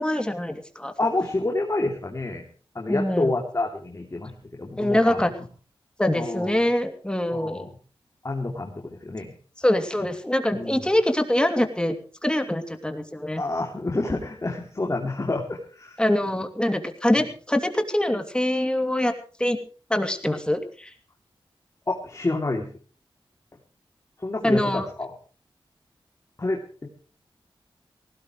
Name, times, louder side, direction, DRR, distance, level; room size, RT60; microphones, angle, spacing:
voice 1, 0.0-0.9 2.9-3.3 4.8-5.3 6.0-7.7 9.6-11.9 12.2-13.4 16.0-19.1 19.4-19.6 19.9-20.9 24.4-24.9, left 1 dB, 10° left, 7 dB, 2.8 m, -24 dB
voice 2, 1.0-2.4 2.7-5.2 6.1-6.5 7.3-7.7 8.2-8.7 9.0-9.3 10.5-10.9 13.4-16.0 21.9-22.7 24.2-25.1 26.4-26.9, left 2 dB, 35° left, 0 dB, 3.0 m, -28 dB
18.5 x 17.0 x 3.2 m, 0.40 s
wide cardioid pair, 70°, 9 cm